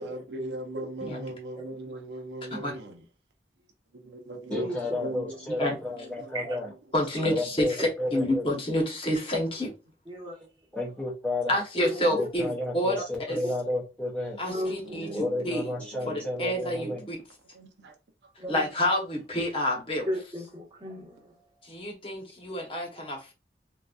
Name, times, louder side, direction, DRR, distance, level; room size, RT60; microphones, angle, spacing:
voice 1, 0.0-3.0 4.0-5.4 6.0-6.3 14.8-16.5 16.7-17.0 17.5-17.9, right 2 dB, 80° right, 0.6 m, -39 dB
voice 2, 0.7-1.2 1.5-1.7 4.5-4.7 5.6-5.7 6.3-6.6 10.1-10.5 11.8-12.3 13.0-13.1 14.5-15.2 18.4-18.6 20.1-21.4, equal, 25° right, 1.1 m, -35 dB
voice 3, 4.5-6.7 7.2-8.5 10.7-11.5 12.1-14.4 15.1-17.1, left 2 dB, 10° left, 0.5 m, -32 dB
voice 4, 6.9-9.7 11.5-13.0 13.3-13.4 14.4-15.7 16.1-17.2 18.5-20.1 21.6-23.3, left 1 dB, 30° left, 0.9 m, -29 dB
3.8 x 2.4 x 2.3 m
head